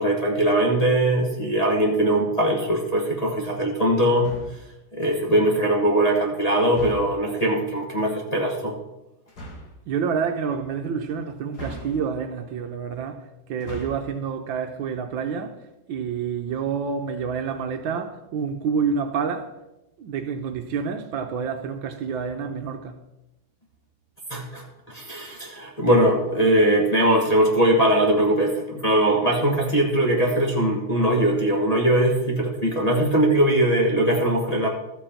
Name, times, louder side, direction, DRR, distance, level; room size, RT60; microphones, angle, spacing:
voice 1, 0.0-4.3 4.9-8.7 24.3-34.7, right 1 dB, 20° left, 1.2 m, -21 dB
sound 1, 4.2-4.7 6.7-7.3 9.3-9.8 11.5-12.3 13.5-14.2, equal, 50° left, 2.2 m, -39 dB
voice 2, 9.9-15.6 15.9-19.5 20.0-23.0, right 6 dB, 75° right, 1.5 m, -28 dB
13.0 x 7.4 x 4.4 m
omnidirectional pair, 2.3 m